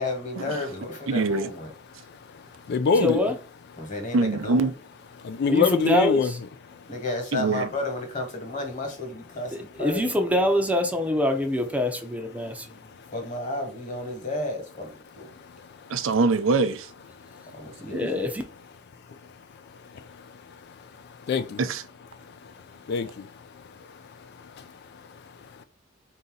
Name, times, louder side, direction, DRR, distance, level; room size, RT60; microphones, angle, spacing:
voice 1, 0.0-1.7 3.8-4.7 6.9-10.1 13.1-15.3 17.5-18.3, left 2 dB, 40° left, 1.4 m, -32 dB
voice 2, 1.1-1.5 4.1-4.7 7.3-7.7 15.9-16.9 17.9-18.1 21.6-21.8, right 3 dB, 85° right, 0.5 m, -24 dB
voice 3, 2.3-3.2 5.2-6.3 17.3-17.4 19.9-20.7 21.2-21.6 22.4-22.5 22.9-23.6 24.2-25.2, left 5 dB, 55° left, 0.3 m, -27 dB
voice 4, 2.9-3.4 5.5-6.4 9.5-12.8 17.9-18.4, left 1 dB, 5° right, 0.6 m, -25 dB
3.9 x 2.8 x 3.8 m
head